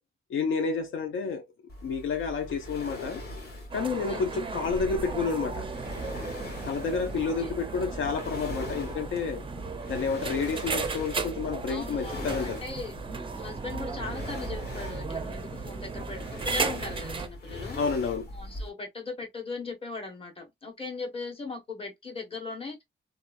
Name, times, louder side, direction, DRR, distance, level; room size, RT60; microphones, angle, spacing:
voice 1, 0.3-1.4 1.8-3.2 3.7-5.7 6.7-9.4 9.9-12.6 17.7-18.3, left 5 dB, 75° left, 0.5 m, -30 dB
sound 1, 1.7-18.7, left 1 dB, 55° left, 1.4 m, -41 dB
sound 2, 3.7-17.3, right 4 dB, 25° right, 0.4 m, -36 dB
voice 2, 7.1-7.5 11.7-13.0 13.3-17.8 18.3-22.8, left 3 dB, 30° left, 1.2 m, -39 dB
2.7 x 2.3 x 2.4 m
cardioid pair, 115°, 20 cm